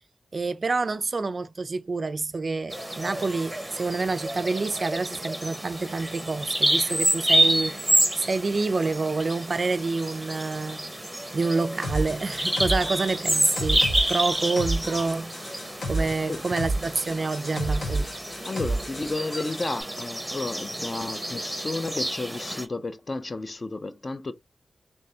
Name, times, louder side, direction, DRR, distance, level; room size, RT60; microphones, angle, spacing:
voice 1, 0.3-7.9 8.2-18.1, right 3 dB, 40° right, 0.3 m, -28 dB
Bird vocalization bird call bird song, 2.7-22.7, right 1 dB, 5° right, 0.7 m, -29 dB
sound 1, 11.8-19.7, right 2 dB, 80° left, 1.1 m, -31 dB
voice 2, 18.5-24.3, left 3 dB, 35° left, 0.4 m, -32 dB
3.4 x 2.7 x 2.7 m
wide cardioid pair, 155°, 0 cm